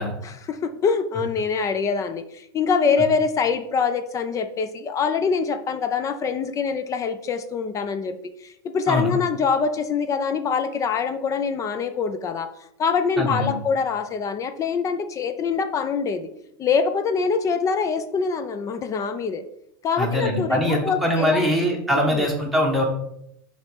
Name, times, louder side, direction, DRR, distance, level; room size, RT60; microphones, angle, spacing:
voice 1, 0.0-8.1 8.4-12.5 12.8-16.3 16.6-19.4 19.8-21.5 22.1-22.3, left 5 dB, 25° left, 9 dB, 0.4 m, -24 dB
voice 2, 13.2-13.5 20.0-22.8, equal, ahead, -1 dB, 1.4 m, -22 dB
6.1 x 3.2 x 4.9 m, 0.78 s
supercardioid pair, 125°, 13 cm